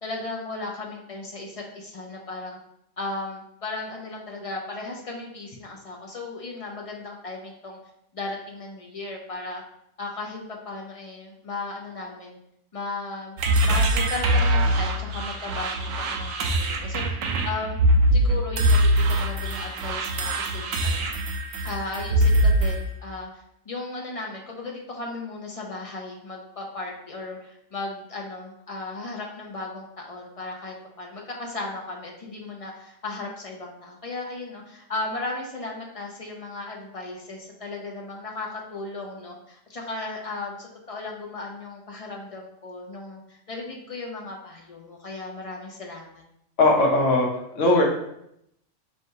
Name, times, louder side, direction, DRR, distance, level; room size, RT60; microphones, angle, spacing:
voice 1, 0.0-2.6 3.0-7.8 8.1-9.6 10.0-12.4 12.7-17.2 17.4-17.8 18.1-21.1 21.6-46.2, left 2 dB, 45° left, 0 dB, 0.4 m, -36 dB
sound 1, 13.4-22.8, right 1 dB, 75° right, 0.9 m, -22 dB
voice 2, 46.6-47.3 47.5-47.8, left 2 dB, 70° left, 0 dB, 1.2 m, -18 dB
4.4 x 3.3 x 2.8 m, 0.76 s
omnidirectional pair, 1.3 m